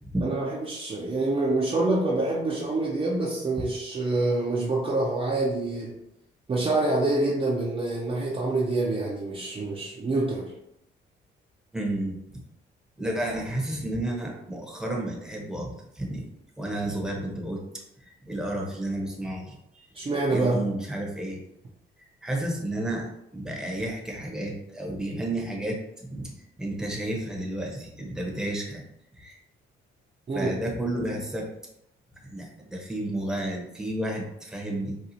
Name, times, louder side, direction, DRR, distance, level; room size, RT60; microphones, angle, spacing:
voice 1, 0.2-6.0 6.5-10.5 19.9-20.7 30.3-30.5, right 2 dB, 30° right, -3 dB, 0.6 m, -26 dB
voice 2, 11.7-12.4 13.0-16.2 16.6-19.9 20.3-21.4 22.0-23.1 23.3-26.3 26.6-28.8 29.2-29.4 30.3-31.5 32.2-35.0, right 1 dB, 5° right, -1 dB, 0.9 m, -32 dB
4.2 x 2.3 x 2.7 m, 0.81 s
cardioid pair, 90°, 20 cm